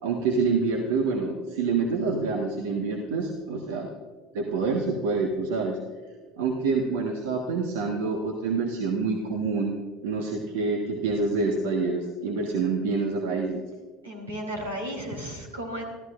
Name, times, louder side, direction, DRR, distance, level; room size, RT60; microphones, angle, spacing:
voice 1, 0.0-3.9 4.3-5.8 6.4-9.8 10.0-13.6, right 4 dB, 70° right, 2 dB, 1.4 m, -27 dB
voice 2, 14.0-15.8, equal, 85° right, 0 dB, 3.5 m, -34 dB
27.0 x 15.0 x 2.5 m, 1.5 s
figure-of-eight pair, 65°, 0 cm